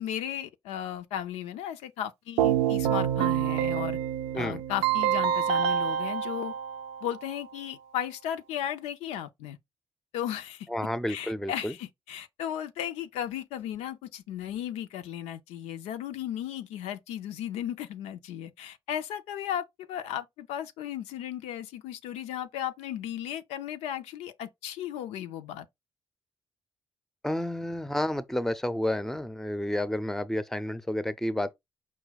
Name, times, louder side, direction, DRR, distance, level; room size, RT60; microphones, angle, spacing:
voice 1, 0.0-4.0 4.3-6.5 7.0-9.6 10.1-10.7 11.1-25.7, left 10 dB, 85° left, 0.4 m, -35 dB
Keyboard (musical), 2.4-7.3, right 9 dB, 90° right, 0.4 m, -27 dB
voice 2, 10.7-11.8 27.2-31.5, left 1 dB, 5° left, 0.5 m, -30 dB
4.8 x 2.2 x 4.0 m
supercardioid pair, 55°, 11 cm